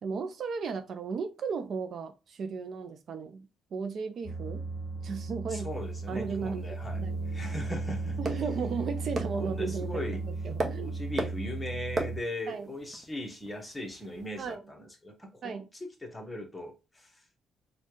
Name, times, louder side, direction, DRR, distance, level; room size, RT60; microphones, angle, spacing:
voice 1, 0.0-4.6 5.0-5.7 6.1-6.6 7.0-7.2 8.2-10.9 12.5-12.7 14.4-14.6 15.4-15.7, right 5 dB, 60° right, 0.5 m, -35 dB
sound 1, 4.2-12.2, right 3 dB, 15° right, 2.0 m, -36 dB
voice 2, 5.5-7.0 7.3-8.4 9.3-10.2 10.8-17.2, left 1 dB, 15° left, 1.1 m, -39 dB
sound 2, 5.7-14.5, right 2 dB, 35° right, 0.9 m, -40 dB
4.3 x 2.3 x 3.0 m
cardioid pair, 90°, 0 cm